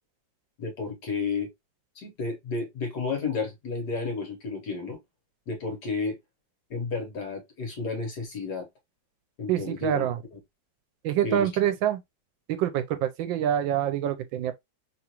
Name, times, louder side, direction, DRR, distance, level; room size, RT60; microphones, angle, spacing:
voice 1, 0.6-1.5 2.0-5.0 5.5-6.2 6.7-8.7 9.4-10.4 11.2-11.5, left 4 dB, 60° left, 1.7 m, -32 dB
voice 2, 9.5-10.2 11.0-12.0 12.5-14.5, right 10 dB, 85° right, 1.4 m, -26 dB
3.6 x 2.5 x 2.8 m
omnidirectional pair, 2.0 m